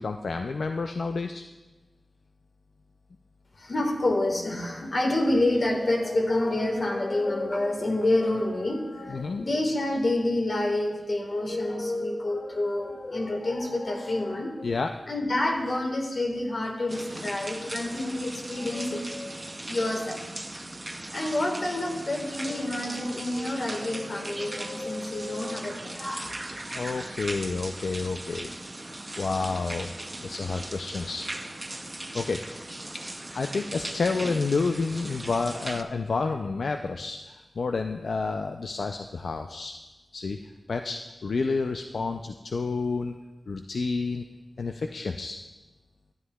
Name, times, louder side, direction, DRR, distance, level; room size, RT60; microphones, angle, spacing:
voice 1, 0.0-1.4 9.1-9.4 14.6-14.9 26.7-28.5 29.2-29.9 30.2-31.3 32.1-32.4 32.9-39.7 40.1-40.4 40.7-43.1 43.5-44.3 44.6-45.4, left 4 dB, 80° left, 5 dB, 0.3 m, -30 dB
voice 2, 3.6-14.8 15.1-19.4 19.7-20.3 21.1-26.3, left 1 dB, 55° left, 2 dB, 1.4 m, -28 dB
sound 1, 16.9-35.8, right 1 dB, 25° right, 0.5 m, -38 dB
12.5 x 9.4 x 2.2 m, 1.2 s
wide cardioid pair, 80°, 0 cm